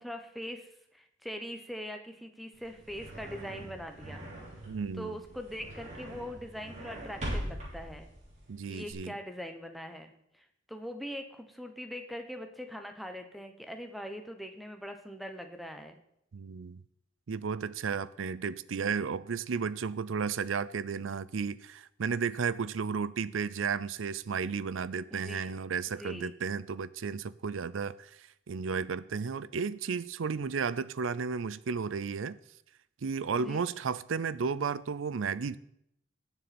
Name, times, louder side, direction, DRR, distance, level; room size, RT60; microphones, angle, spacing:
voice 1, 0.0-4.2 5.0-8.1 8.7-16.0 25.1-25.6 26.0-26.3 33.4-33.6, equal, ahead, 1.0 m, -42 dB
sound 1, 2.5-8.9, right 1 dB, 35° right, 3.8 m, -42 dB
voice 2, 4.7-5.2 8.5-9.1 16.3-16.8 17.3-32.4 33.0-35.6, right 5 dB, 75° right, 0.5 m, -33 dB
18.5 x 7.1 x 4.3 m
head